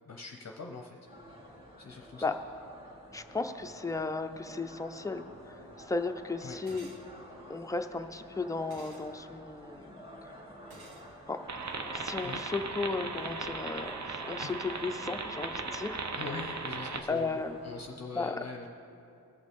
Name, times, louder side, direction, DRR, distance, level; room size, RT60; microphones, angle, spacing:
voice 1, 0.1-1.0 1.8-2.3 6.4-6.6 12.2-12.4 14.4-14.6 16.1-18.7, left 3 dB, 40° left, 1 dB, 0.7 m, -43 dB
sound 1, 1.0-17.9, equal, 15° right, 2.1 m, -50 dB
voice 2, 3.1-6.9 7.5-10.0 11.3-11.4 11.9-14.0 14.3-16.0 17.1-17.6 18.2-18.4, left 3 dB, 10° left, 6 dB, 0.4 m, -35 dB
sound 2, 6.7-7.0 8.7-9.1 10.7-11.1, right 2 dB, 75° right, 1.6 m, -51 dB
sound 3, 11.5-17.0, right 4 dB, 45° right, 0.7 m, -37 dB
19.0 x 6.4 x 3.6 m, 2.7 s
wide cardioid pair, 115°, 39 cm